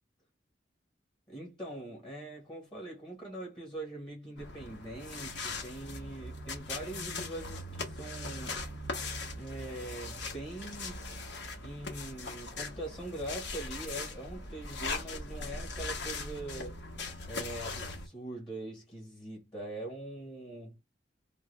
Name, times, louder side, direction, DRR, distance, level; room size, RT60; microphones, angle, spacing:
voice 1, 1.3-8.6 9.4-11.0 11.6-16.8 17.2-20.7, right 1 dB, 25° left, 1.4 m, -42 dB
sound 1, 4.4-18.1, left 3 dB, 70° left, 1.3 m, -40 dB
3.6 x 2.3 x 3.2 m
head